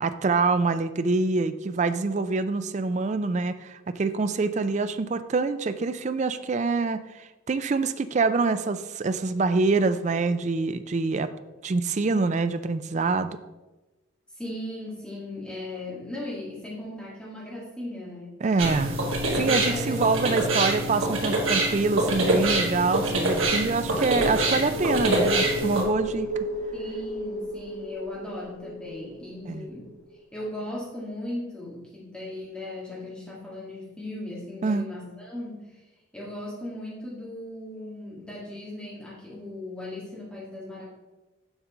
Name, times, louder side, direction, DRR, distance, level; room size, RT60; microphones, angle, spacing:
voice 1, 0.0-11.3 11.6-13.3 18.4-19.0 19.3-26.3 29.5-29.7 34.6-34.9, right 3 dB, 35° right, 11 dB, 0.3 m, -25 dB
voice 2, 14.3-18.4 19.2-20.0 26.7-29.9 30.3-35.8 36.1-40.9, left 1 dB, 5° left, -6 dB, 1.9 m, -37 dB
sound 1, 18.6-25.8, right 2 dB, 75° right, 1.7 m, -25 dB
sound 2, 24.7-30.0 30.2-30.3, equal, 60° left, 1.2 m, -33 dB
7.2 x 5.3 x 4.9 m, 1.1 s
head